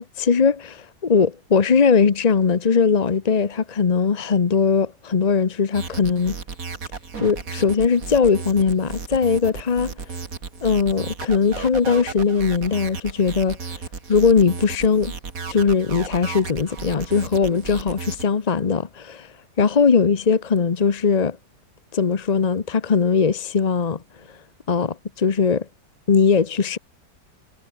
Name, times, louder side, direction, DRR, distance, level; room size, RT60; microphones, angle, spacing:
voice 1, 0.0-6.4 7.2-9.9 10.6-13.8 14.1-15.1 15.5-21.4 21.9-24.0 24.3-24.4 24.7-25.7 26.1-26.8, left 5 dB, 35° left, 0.7 m, -20 dB
sound 1, 5.7-18.2, right 5 dB, 55° right, 2.6 m, -34 dB
omnidirectional pair, 1.8 m